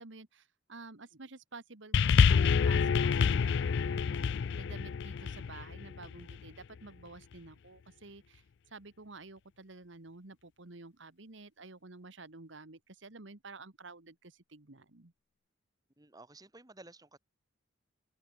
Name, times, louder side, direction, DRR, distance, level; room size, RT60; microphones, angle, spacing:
voice 1, 0.0-15.1, right 3 dB, 65° right, 1.6 m, -51 dB
sound 1, 1.9-6.5 7.3-7.4, left 6 dB, 60° left, 0.4 m, -27 dB
voice 2, 16.0-17.2, right 2 dB, 20° right, 1.8 m, -54 dB
open air
head